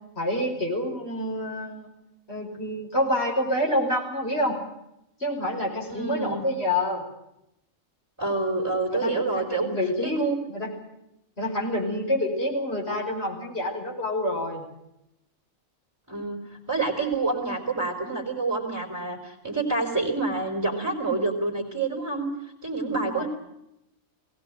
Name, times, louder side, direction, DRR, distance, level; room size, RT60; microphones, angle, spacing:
voice 1, 0.2-1.9 2.3-4.6 5.2-7.0 8.9-10.2 10.5-10.7 11.4-14.6 22.9-23.3, left 1 dB, 45° left, -1 dB, 6.1 m, -27 dB
voice 2, 5.9-6.4 8.2-9.7 10.0-10.4 16.1-23.3, right 3 dB, 10° right, -1 dB, 4.4 m, -28 dB
21.0 x 17.5 x 9.0 m, 0.84 s
omnidirectional pair, 1.5 m